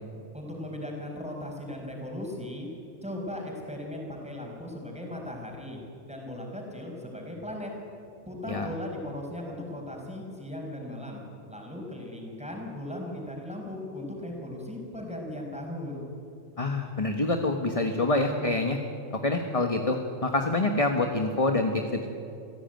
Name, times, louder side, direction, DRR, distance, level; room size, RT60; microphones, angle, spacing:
voice 1, 0.3-2.7 3.0-7.7 8.3-11.2 11.5-16.1, left 1 dB, 5° right, 0 dB, 5.1 m, -37 dB
voice 2, 16.6-18.8 19.2-22.1, left 2 dB, 25° left, 5 dB, 1.4 m, -26 dB
27.5 x 16.0 x 9.2 m, 2.7 s
omnidirectional pair, 1.4 m